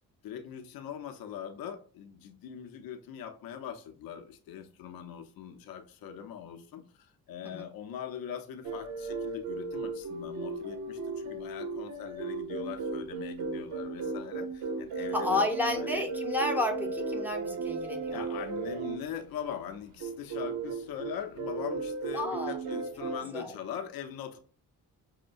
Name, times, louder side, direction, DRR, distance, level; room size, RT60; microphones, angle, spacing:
voice 1, 0.2-15.4 15.8-16.1 18.1-24.4, left 9 dB, 85° left, 6 dB, 0.7 m, -41 dB
sound 1, 8.6-19.0 20.0-23.2, right 3 dB, 70° right, 1.0 m, -35 dB
voice 2, 15.1-18.3 22.1-22.6 23.3-23.5, left 2 dB, 5° right, 3 dB, 0.9 m, -31 dB
6.2 x 2.1 x 2.5 m, 0.41 s
cardioid pair, 95°, 34 cm